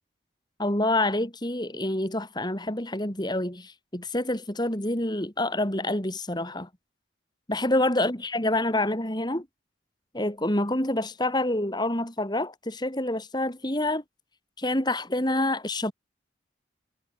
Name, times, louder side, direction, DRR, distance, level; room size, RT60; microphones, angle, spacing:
voice 1, 0.6-6.7 7.5-9.5 10.1-14.0 14.6-15.9, left 1 dB, 25° left, 4.0 m, -27 dB
head